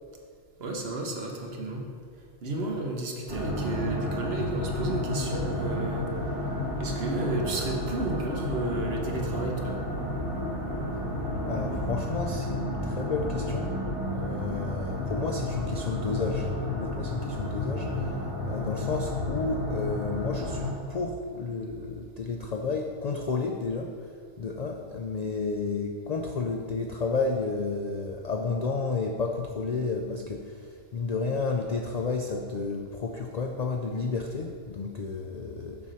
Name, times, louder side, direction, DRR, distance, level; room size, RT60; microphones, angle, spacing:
voice 1, 0.6-1.9 2.4-6.1 6.8-9.8, right 2 dB, 55° right, 0 dB, 1.1 m, -32 dB
sound 1, 3.3-20.7, left 1 dB, 15° right, 1.7 m, -31 dB
voice 2, 11.4-13.7 14.1-23.9 24.4-35.8, left 4 dB, 70° left, 3 dB, 0.4 m, -31 dB
7.1 x 4.4 x 6.2 m, 2.2 s
omnidirectional pair, 1.3 m